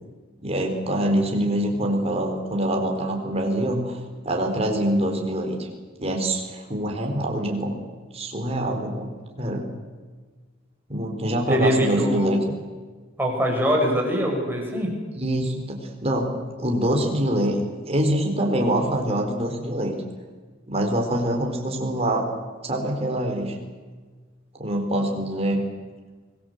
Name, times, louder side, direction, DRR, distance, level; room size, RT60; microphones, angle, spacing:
voice 1, 0.4-5.7 6.0-7.7 8.1-9.1 9.4-9.6 10.9-12.4 15.1-16.3 16.6-17.6 17.9-19.9 20.7-22.3 22.6-23.5 24.5-25.6, right 1 dB, 30° right, 2 dB, 4.2 m, -25 dB
voice 2, 11.5-12.3 13.2-14.9, equal, 10° right, 0 dB, 5.9 m, -23 dB
25.0 x 19.5 x 8.1 m, 1.4 s
head